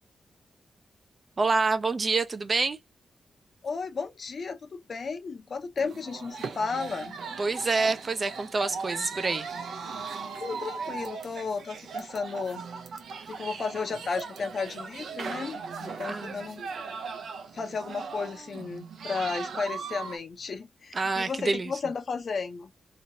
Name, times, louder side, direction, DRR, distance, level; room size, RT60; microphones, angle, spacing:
voice 1, 1.4-2.8 7.4-9.5 16.0-16.4 20.9-21.7, right 3 dB, 35° right, 0.4 m, -27 dB
voice 2, 3.6-7.1 10.4-12.6 13.3-16.6 17.5-22.7, left 4 dB, 55° left, 0.7 m, -34 dB
sound 1, 5.8-20.2, right 5 dB, 85° right, 0.7 m, -38 dB
3.0 x 2.8 x 2.7 m
wide cardioid pair, 115°, 0 cm